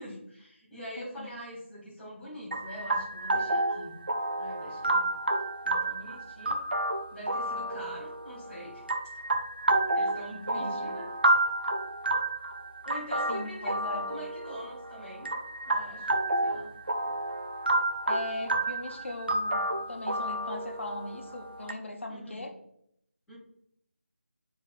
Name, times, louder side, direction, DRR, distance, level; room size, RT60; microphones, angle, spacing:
voice 1, 0.0-4.0 4.3-5.1 5.6-6.6 7.1-8.9 9.9-11.1 12.8-15.3 15.6-16.1 16.4-16.7 17.0-17.2 22.1-22.4 23.3-23.4, equal, 5° left, -15 dB, 1.8 m, -44 dB
voice 2, 1.0-1.3 10.3-11.0 13.3-14.1 18.1-22.5, left 2 dB, 65° left, 3 dB, 1.2 m, -39 dB
sound 1, 2.5-21.7, right 2 dB, 50° right, 0.6 m, -30 dB
7.9 x 4.8 x 2.5 m, 0.73 s
figure-of-eight pair, 180°, 7 cm